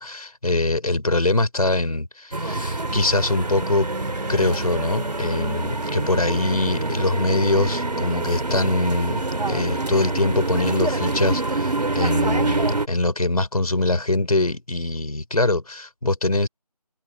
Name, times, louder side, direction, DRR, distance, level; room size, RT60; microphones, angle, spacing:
voice 1, 0.0-3.9 4.3-16.5, left 2 dB, 65° left, 5.1 m, -23 dB
sound 1, 2.3-12.9, right 2 dB, 80° right, 2.7 m, -26 dB
figure-of-eight pair, 180°, 21 cm